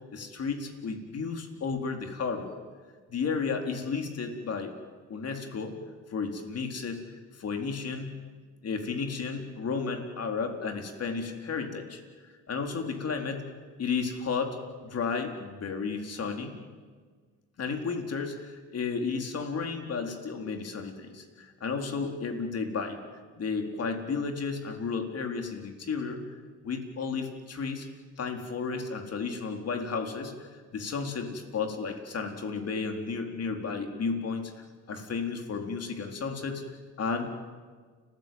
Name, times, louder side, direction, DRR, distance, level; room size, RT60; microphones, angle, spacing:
voice 1, 0.1-2.6 3.1-4.7 5.1-5.8 6.1-7.1 7.4-8.1 8.6-12.0 12.5-13.4 13.8-14.6 14.8-16.5 17.6-23.0 23.4-26.2 26.6-27.9 28.2-34.5 34.9-36.6 37.0-37.4, left 5 dB, 55° left, 4 dB, 4.0 m, -33 dB
30.0 x 14.5 x 9.4 m, 1.5 s
cardioid pair, 90°, 30 cm